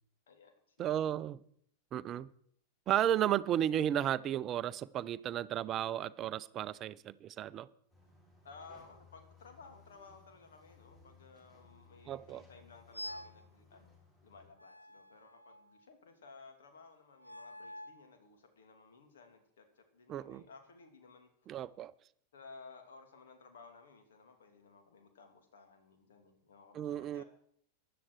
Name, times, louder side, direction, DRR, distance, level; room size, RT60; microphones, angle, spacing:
voice 1, 0.3-1.1 8.4-14.0 14.2-21.3 22.3-27.2, left 4 dB, 60° left, 6 dB, 2.7 m, -57 dB
voice 2, 0.8-1.4 1.9-2.3 2.9-7.7 12.1-12.4 20.1-20.4 21.5-21.9 26.7-27.2, right 11 dB, 30° right, 18 dB, 0.5 m, -33 dB
sound 1, 7.9-14.5, left 4 dB, 20° left, 7.3 m, -62 dB
sound 2, 12.9-13.4 14.6-15.8 17.2-18.0, equal, 90° left, 0.6 m, -47 dB
16.0 x 11.0 x 4.8 m, 0.66 s
figure-of-eight pair, 90°, 0 cm